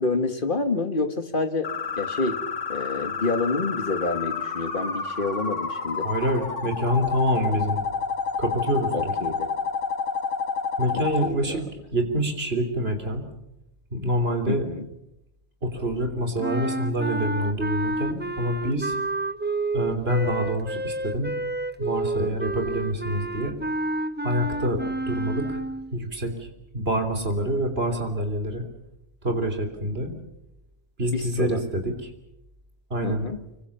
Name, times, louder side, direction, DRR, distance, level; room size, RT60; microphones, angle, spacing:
voice 1, 0.0-1.7 2.0-2.4 2.7-6.1 8.9-9.5 10.9-11.6 14.5-14.9 31.1-31.6 33.0-33.4, left 3 dB, 45° left, 8 dB, 2.1 m, -28 dB
sound 1, 1.6-11.3, left 5 dB, 90° left, 2.1 m, -29 dB
voice 2, 6.0-7.8 8.4-9.1 10.8-11.6 11.9-13.3 13.9-14.7 15.6-19.0 19.7-21.3 21.8-23.6 24.2-25.6 25.9-26.5 26.7-28.7 29.2-30.2 31.0-32.1 32.9-33.3, equal, 55° right, 5 dB, 3.6 m, -26 dB
sound 2, 16.4-25.9, right 2 dB, 10° right, 0.8 m, -29 dB
25.5 x 24.0 x 7.2 m, 0.86 s
omnidirectional pair, 1.2 m